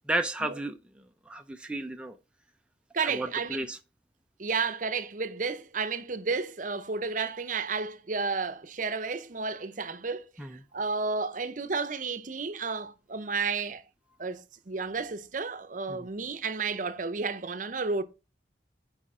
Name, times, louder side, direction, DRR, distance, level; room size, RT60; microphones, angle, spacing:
voice 1, 0.1-0.8 1.3-2.2 3.1-3.8 10.4-10.6 15.9-16.0, right 1 dB, 5° right, 0.5 m, -32 dB
voice 2, 2.9-3.7 4.4-10.2 10.7-13.8 14.2-18.0, right 4 dB, 45° right, 0.8 m, -32 dB
9.7 x 5.1 x 3.7 m
head